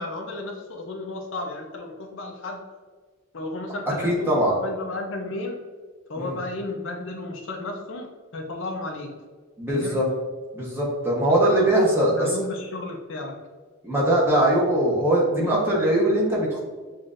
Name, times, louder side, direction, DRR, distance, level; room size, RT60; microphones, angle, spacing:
voice 1, 0.0-2.6 3.3-5.6 6.1-8.1 8.3-9.1 9.7-10.0 11.3-13.3, left 2 dB, 60° left, 2 dB, 0.6 m, -33 dB
voice 2, 4.0-4.6 6.2-6.4 9.6-10.1 10.5-12.4 13.8-16.6, right 1 dB, 10° right, -4 dB, 0.9 m, -21 dB
6.8 x 2.5 x 2.5 m, 1.4 s
head